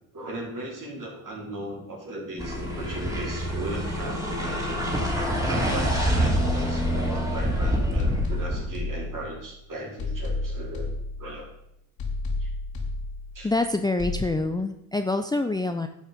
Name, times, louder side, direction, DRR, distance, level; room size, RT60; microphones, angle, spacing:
voice 1, 0.1-4.8 5.5-10.9 11.2-11.5 12.4-12.5 13.3-13.5 14.4-14.5, right 1 dB, 45° right, -1 dB, 4.3 m, -37 dB
sound 1, 2.4-8.7, equal, 5° right, 3.1 m, -26 dB
sound 2, 6.2-7.5 8.0-9.5 10.0-11.5 12.0-13.5 14.0-14.3, left 2 dB, 55° left, 2.6 m, -32 dB
voice 2, 13.4-15.9, left 2 dB, 10° left, 7 dB, 0.6 m, -26 dB
11.0 x 6.3 x 5.3 m, 0.81 s
supercardioid pair, 65°, 44 cm